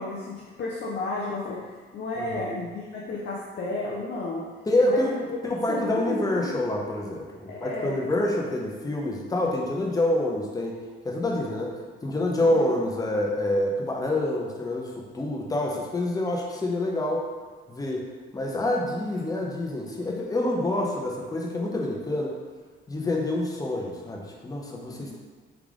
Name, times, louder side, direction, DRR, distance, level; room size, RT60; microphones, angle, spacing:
voice 1, 0.0-4.4 4.8-5.2 5.5-6.5 7.5-8.2 12.4-12.7 24.9-25.2, left 2 dB, 60° left, -4 dB, 0.6 m, -33 dB
voice 2, 4.7-5.2 5.6-10.8 11.0-11.7 12.0-17.3 17.7-18.1 18.3-22.3 22.9-25.2, left 1 dB, 20° left, -1 dB, 0.7 m, -27 dB
3.4 x 2.4 x 3.6 m, 1.5 s
cardioid pair, 90°, 20 cm